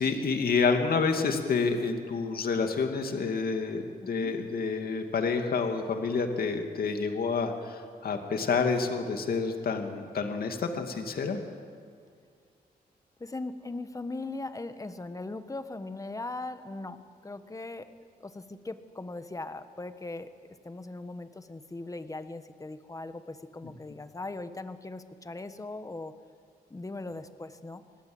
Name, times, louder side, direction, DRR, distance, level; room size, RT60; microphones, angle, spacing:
voice 1, 0.0-11.4, left 4 dB, 65° left, 5 dB, 2.4 m, -28 dB
voice 2, 4.0-4.3 13.2-20.3 20.6-26.1 26.7-27.8, left 2 dB, 20° left, 10 dB, 1.4 m, -39 dB
26.0 x 19.5 x 8.0 m, 2.1 s
cardioid pair, 90°, 16 cm